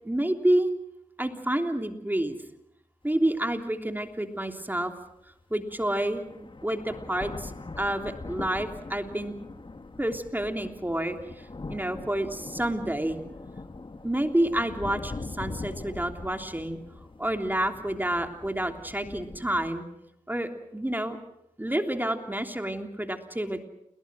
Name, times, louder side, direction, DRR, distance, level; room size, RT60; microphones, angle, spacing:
voice 1, 0.0-0.7 1.2-2.4 3.0-4.9 5.5-9.3 10.0-13.2 14.0-16.8 17.2-19.8 20.3-21.2 21.6-23.7, right 1 dB, 15° right, 5 dB, 3.2 m, -29 dB
sound 1, 3.2-3.3 3.9-4.0 5.3-5.4 5.7-19.7, left 3 dB, 35° left, 1.7 m, -42 dB
29.5 x 22.5 x 6.3 m, 0.83 s
cardioid pair, 40°, 14 cm